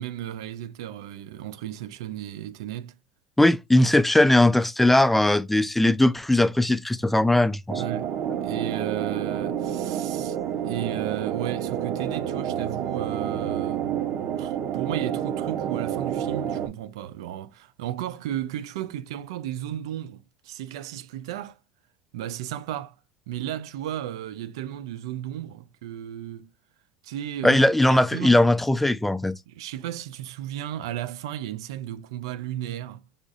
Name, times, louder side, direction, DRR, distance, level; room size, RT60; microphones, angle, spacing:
voice 1, 0.0-2.9 7.8-8.1 8.4-13.9 14.4-21.6 22.1-22.9 23.3-26.5 27.0-28.4 29.5-33.0, right 12 dB, 85° right, 0.4 m, -34 dB
voice 2, 3.4-7.8 27.4-29.4, left 1 dB, 5° left, 0.4 m, -19 dB
sound 1, 7.7-16.7, right 9 dB, 60° right, 0.7 m, -29 dB
4.9 x 2.4 x 2.5 m
supercardioid pair, 100°, 3 cm